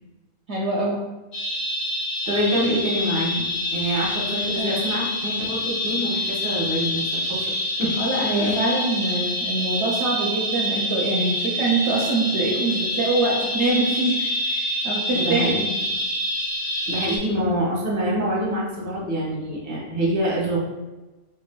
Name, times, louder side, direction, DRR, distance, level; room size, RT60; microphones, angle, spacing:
voice 1, 0.5-1.0 4.6-4.8 8.0-15.6, right 2 dB, 65° right, -3 dB, 0.7 m, -24 dB
sound 1, 1.3-17.2, left 1 dB, 60° left, 1.2 m, -26 dB
voice 2, 2.3-7.4 7.8-7.9 8.4-8.6 15.1-15.6 16.9-20.6, equal, 25° right, -5 dB, 0.4 m, -25 dB
3.1 x 3.0 x 2.2 m, 1.1 s
omnidirectional pair, 1.5 m